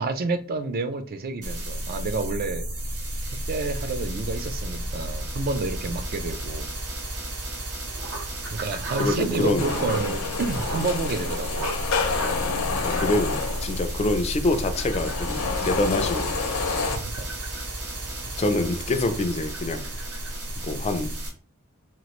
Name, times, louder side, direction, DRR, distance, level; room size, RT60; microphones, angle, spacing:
voice 1, 0.0-2.7 3.3-6.7 8.5-11.7 16.9-17.3, right 3 dB, 45° right, 0.4 m, -29 dB
sound 1, 1.4-21.3, right 1 dB, 90° right, 1.0 m, -33 dB
sound 2, 7.8-20.9, right 3 dB, 60° right, 0.7 m, -42 dB
voice 2, 9.0-9.9 12.8-16.7 18.4-19.9 20.6-21.1, left 2 dB, 30° left, 0.3 m, -26 dB
sound 3, 9.6-17.0, left 4 dB, 75° left, 0.6 m, -29 dB
3.0 x 2.4 x 3.0 m
head